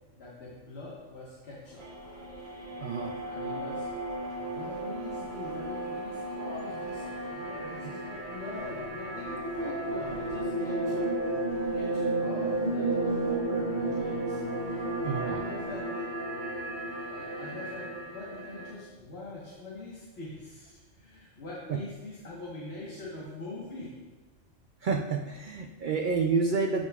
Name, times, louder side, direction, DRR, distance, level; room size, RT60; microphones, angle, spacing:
voice 1, 0.1-1.9 3.3-3.9 4.5-11.1 11.7-16.0 17.1-24.0, left 2 dB, 55° left, -6 dB, 1.5 m, -43 dB
sound 1, 1.6-15.8, left 1 dB, 75° left, 3.2 m, -51 dB
sound 2, 1.8-18.7, right 2 dB, 40° right, 1.2 m, -33 dB
voice 2, 2.8-3.2 15.0-15.4 21.7-21.8 24.8-26.9, right 4 dB, 65° right, 3 dB, 0.5 m, -29 dB
13.5 x 5.2 x 2.4 m, 1.2 s
omnidirectional pair, 1.3 m